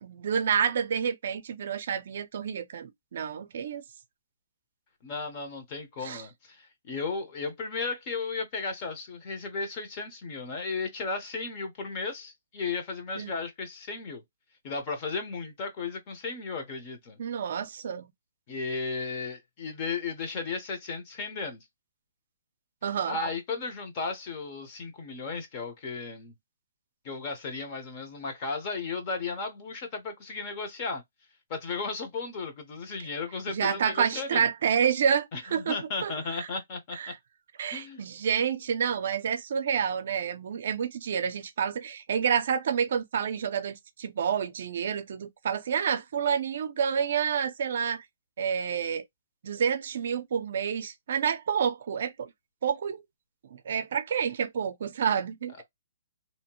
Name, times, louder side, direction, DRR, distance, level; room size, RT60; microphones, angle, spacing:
voice 1, 0.0-3.8 6.0-6.2 13.2-13.3 17.2-18.1 22.8-23.2 33.5-35.8 36.0-36.5 36.9-37.2 37.6-48.1 48.4-49.0 49.4-52.3 52.6-53.0 53.5-55.6, right 7 dB, 55° right, 0.5 m, -29 dB
voice 2, 5.0-14.2 14.6-17.2 18.5-21.6 23.1-26.3 27.0-31.0 31.5-34.5 35.3-37.0 37.7-38.0, left 4 dB, 30° left, 0.8 m, -35 dB
2.7 x 2.1 x 2.8 m
hypercardioid pair, 165°, 0 cm